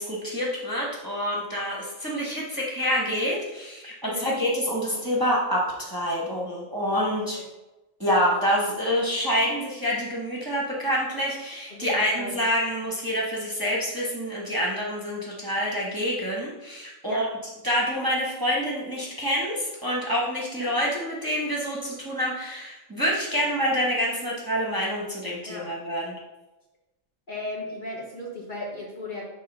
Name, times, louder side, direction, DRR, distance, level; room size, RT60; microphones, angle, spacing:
voice 1, 0.0-7.4 8.0-17.3 17.6-26.2, equal, 20° right, -5 dB, 1.1 m, -27 dB
voice 2, 4.0-4.4 7.1-7.4 11.7-12.4 17.1-17.2 20.6-20.7 25.5-25.6 27.3-29.3, left 1 dB, 40° left, -3 dB, 1.2 m, -36 dB
6.6 x 3.3 x 5.5 m, 1.0 s
omnidirectional pair, 1.3 m